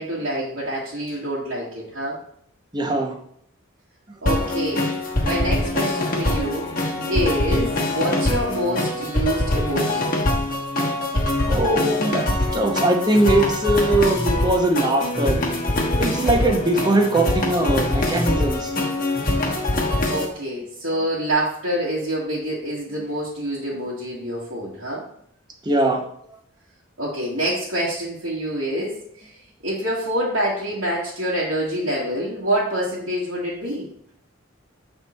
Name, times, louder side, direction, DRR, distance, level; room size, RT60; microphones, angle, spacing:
voice 1, 0.0-2.2 4.2-4.9 5.2-6.7 7.1-10.1 20.0-25.1 27.0-33.9, equal, 70° right, -8 dB, 1.5 m, -26 dB
voice 2, 2.7-3.2 11.4-15.4 16.0-18.7 25.6-26.0, right 2 dB, 20° right, 2 dB, 0.8 m, -21 dB
sound 1, 4.3-20.2, left 1 dB, 40° left, 1.2 m, -23 dB
7.2 x 3.5 x 4.2 m, 0.66 s
head